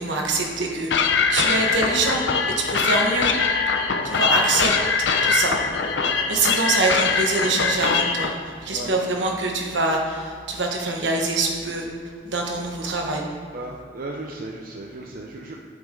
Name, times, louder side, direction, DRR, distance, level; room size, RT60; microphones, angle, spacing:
voice 1, 0.0-3.5 4.0-4.7 5.2-5.6 6.3-8.3 8.6-11.9 12.2-13.2, right 2 dB, 75° right, 1 dB, 1.3 m, -24 dB
sound 1, 0.9-8.3, left 5 dB, 70° left, 0.7 m, -22 dB
voice 2, 3.9-4.5 6.0-6.2 8.7-8.9 12.6-12.7 13.5-15.6, right 2 dB, 50° right, -1 dB, 0.7 m, -36 dB
8.5 x 7.3 x 3.8 m, 2.2 s
head